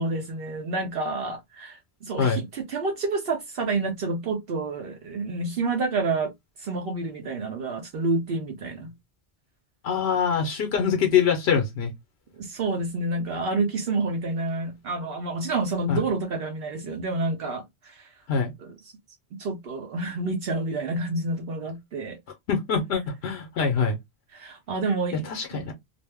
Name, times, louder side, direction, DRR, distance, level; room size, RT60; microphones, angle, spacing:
voice 1, 0.0-6.3 6.6-8.9 12.4-18.1 18.6-18.7 19.4-22.2 24.3-25.6, right 3 dB, 70° right, 0.8 m, -29 dB
voice 2, 9.8-11.9 15.9-16.0 18.3-18.5 22.5-24.0 25.3-25.7, left 6 dB, 80° left, 0.9 m, -24 dB
2.5 x 2.0 x 3.3 m
omnidirectional pair, 1.1 m